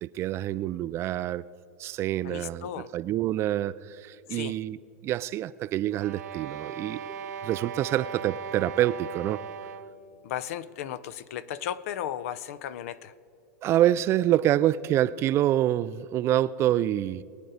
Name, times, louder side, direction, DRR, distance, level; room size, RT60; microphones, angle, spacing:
voice 1, 0.0-1.4 1.8-4.8 5.0-7.0 7.4-9.4 13.6-17.2, right 13 dB, 30° right, 16 dB, 0.3 m, -26 dB
voice 2, 2.2-2.9 4.3-4.5 10.2-13.1, left 10 dB, 65° left, 16 dB, 0.6 m, -35 dB
sound 1, 5.9-10.1, right 7 dB, 90° right, 1.0 m, -38 dB
22.0 x 9.3 x 4.0 m, 2.5 s
supercardioid pair, 130°, 9 cm